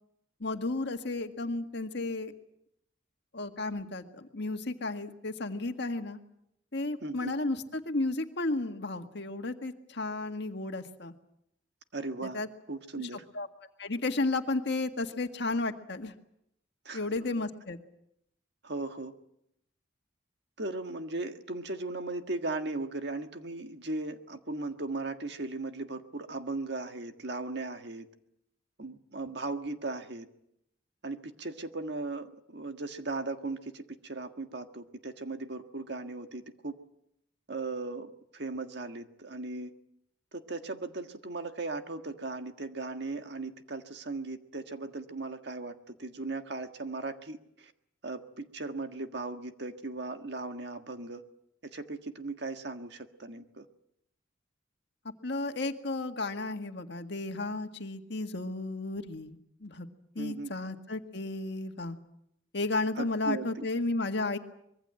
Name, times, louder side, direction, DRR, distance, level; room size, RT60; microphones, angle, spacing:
voice 1, 0.4-2.3 3.3-6.2 6.7-11.1 12.2-12.5 13.1-13.5 13.8-16.1 16.9-17.8 55.2-59.9 60.1-62.0 62.5-64.4, left 2 dB, 60° left, 6 dB, 1.8 m, -33 dB
voice 2, 7.0-7.3 11.9-12.4 12.7-13.2 16.8-17.1 18.6-19.1 20.6-28.1 28.8-30.3 31.0-36.8 37.5-39.7 40.3-47.7 48.0-51.2 51.6-53.6 60.2-60.5 63.0-63.7, right 2 dB, 60° right, 7 dB, 1.7 m, -37 dB
24.5 x 22.5 x 7.8 m, 0.77 s
head